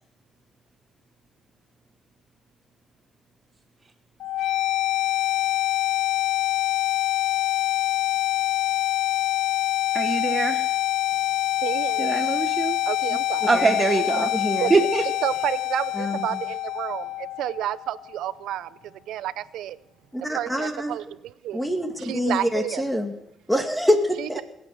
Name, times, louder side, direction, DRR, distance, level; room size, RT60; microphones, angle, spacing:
sound 1, 4.2-18.2, left 15 dB, 85° left, 0.5 m, -25 dB
voice 1, 9.9-10.6 12.0-12.8 13.5-14.3 14.7-15.0, right 3 dB, 30° right, 8 dB, 1.1 m, -22 dB
voice 2, 11.6-12.1 12.8-13.5 14.6-14.7 15.2-19.8 20.3-21.6 22.0-22.9 24.2-24.4, right 12 dB, 85° right, 17 dB, 0.5 m, -30 dB
voice 3, 14.1-14.7 15.9-16.4 20.1-21.0 21.5-23.1 23.5-24.4, equal, 5° left, 4 dB, 2.3 m, -26 dB
19.5 x 8.9 x 6.5 m, 0.80 s
cardioid pair, 90°, 0 cm